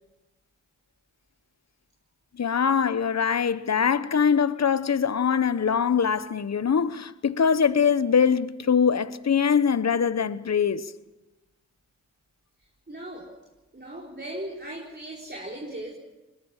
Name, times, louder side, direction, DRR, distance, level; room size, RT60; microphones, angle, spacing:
voice 1, 2.4-10.9, left 6 dB, 50° left, 1.0 m, -23 dB
voice 2, 12.9-13.3 13.7-15.9, right 1 dB, 30° right, 4.4 m, -37 dB
21.0 x 19.5 x 7.3 m
cardioid pair, 45°, 34 cm